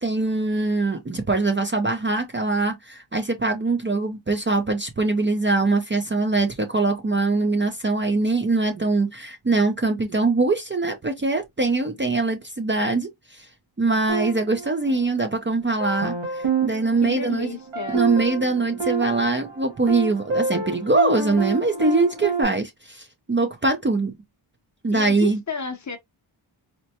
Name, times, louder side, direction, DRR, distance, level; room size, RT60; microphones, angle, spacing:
voice 1, 0.0-13.5 13.8-17.5 17.9-24.1 24.8-25.4, right 3 dB, 25° right, 0.5 m, -23 dB
sound 1, 14.1-15.3 15.8-22.4, right 4 dB, 75° right, 1.4 m, -28 dB
voice 2, 17.0-18.0 24.9-26.0, left 5 dB, 35° left, 0.7 m, -31 dB
4.3 x 2.1 x 2.7 m
wide cardioid pair, 120°, 48 cm